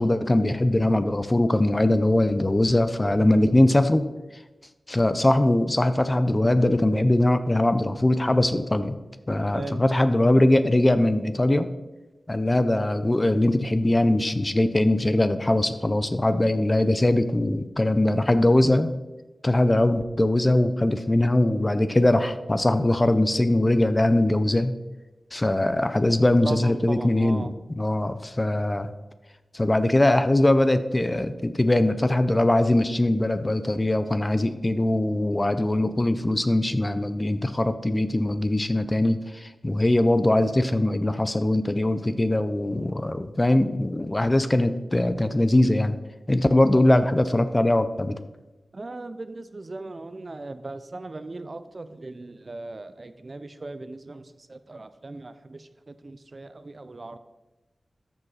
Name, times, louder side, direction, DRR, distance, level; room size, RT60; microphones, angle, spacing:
voice 1, 0.0-4.1 4.9-9.0 9.3-11.7 12.3-18.9 19.4-24.7 25.3-28.9 29.5-46.0 46.3-48.2, left 1 dB, 25° left, 11 dB, 0.6 m, -21 dB
voice 2, 26.4-27.5 48.7-57.2, right 2 dB, 40° right, 11 dB, 0.5 m, -38 dB
13.5 x 5.3 x 4.1 m, 1.1 s
wide cardioid pair, 85°, 0 cm